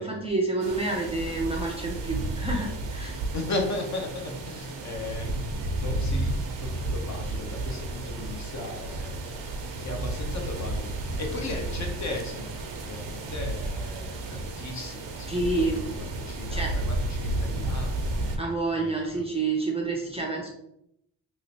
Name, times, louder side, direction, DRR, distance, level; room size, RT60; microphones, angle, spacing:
voice 1, 0.0-3.2 15.3-16.2 16.5-16.8 18.4-20.5, right 3 dB, 15° right, -2 dB, 0.5 m, -29 dB
sound 1, 0.6-18.4, right 2 dB, 90° right, 0.7 m, -32 dB
voice 2, 3.1-5.4 5.7-6.3 6.6-9.4 9.8-18.1 18.7-19.2, left 2 dB, 40° left, 1 dB, 0.7 m, -36 dB
3.0 x 3.0 x 2.8 m, 0.77 s
cardioid pair, 120°, 42 cm